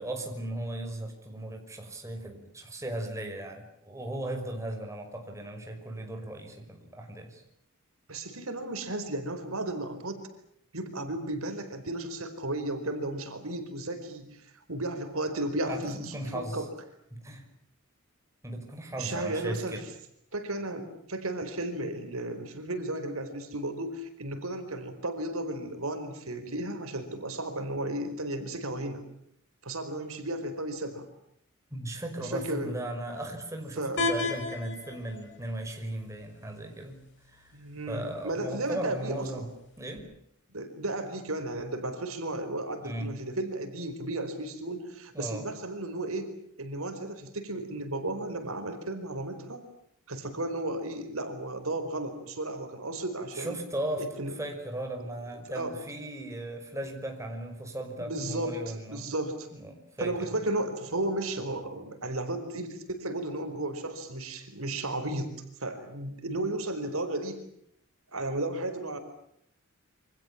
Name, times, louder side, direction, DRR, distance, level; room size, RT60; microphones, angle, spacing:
voice 1, 0.0-7.4 15.7-16.6 17.1-17.4 18.4-19.8 31.7-37.0 37.3-37.5 37.9-39.5 39.8-40.1 42.8-43.1 45.1-45.5 53.3-54.1 54.3-59.1 59.5-60.3, right 1 dB, 15° right, 3 dB, 5.7 m, -37 dB
voice 2, 8.1-10.3 10.7-16.7 19.0-19.8 20.3-29.0 29.6-31.1 32.2-32.7 33.8-34.1 37.5-39.5 40.5-46.3 46.6-49.6 50.1-53.6 54.0-54.3 55.3-55.7 58.0-59.5 60.0-67.4 68.1-69.0, right 1 dB, 70° right, 8 dB, 4.8 m, -34 dB
sound 1, 34.0-40.0, left 3 dB, 55° left, 5.7 m, -38 dB
28.5 x 26.0 x 7.3 m, 0.74 s
head